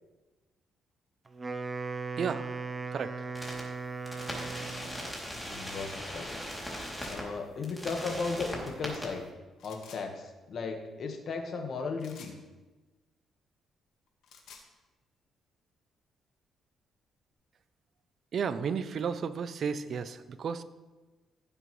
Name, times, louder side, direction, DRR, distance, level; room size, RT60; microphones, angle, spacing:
Wind instrument woodwind instrument, 1.3-5.1, right 4 dB, 30° right, 0.9 m, -38 dB
voice 1, 2.2-2.6 2.9-3.1 18.3-20.6, right 6 dB, 55° right, 13 dB, 0.6 m, -33 dB
sound 1, 3.3-3.6 4.0-7.2 7.6-9.0, equal, 10° left, 3.1 m, -39 dB
voice 2, 5.3-6.4 7.1-9.3 9.6-12.3, left 4 dB, 55° left, 3 dB, 1.6 m, -36 dB
sound 2, 6.8-7.2 9.6-10.0 12.0-12.4 14.1-14.7, left 6 dB, 80° left, 1.7 m, -51 dB
16.0 x 7.7 x 3.3 m, 1.2 s
cardioid pair, 90°, 0 cm